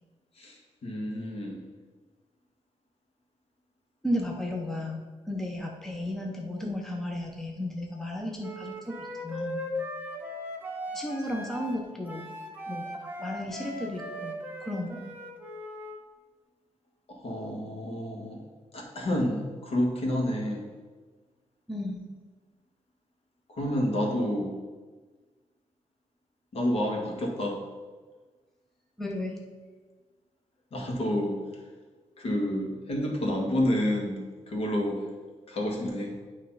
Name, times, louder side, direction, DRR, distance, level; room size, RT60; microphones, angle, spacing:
voice 1, 0.4-1.6 17.1-18.4 18.7-20.6 23.5-24.5 26.5-27.6 30.7-31.4 32.2-35.1 35.5-36.1, left 1 dB, 55° left, 0 dB, 1.6 m, -29 dB
voice 2, 4.0-5.0 5.3-9.6 10.9-12.3 12.7-12.9 13.2-15.0 21.7-22.0 29.0-29.4, left 1 dB, 5° left, 0 dB, 0.7 m, -34 dB
Wind instrument woodwind instrument, 8.4-16.0, equal, 15° right, 1.0 m, -38 dB
9.3 x 3.2 x 5.5 m, 1.4 s
wide cardioid pair, 150°, 12 cm